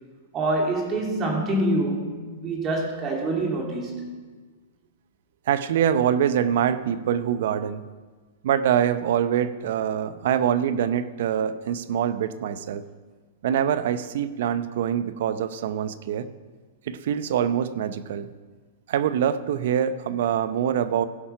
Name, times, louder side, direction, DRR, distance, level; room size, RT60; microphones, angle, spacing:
voice 1, 0.3-4.0, right 1 dB, 30° right, 0 dB, 2.8 m, -26 dB
voice 2, 5.5-7.8 8.4-12.8 13.4-16.3 16.9-18.3 18.9-21.1, right 9 dB, 70° right, 13 dB, 0.6 m, -24 dB
16.0 x 5.7 x 5.8 m, 1.4 s
hypercardioid pair, 125°, 0 cm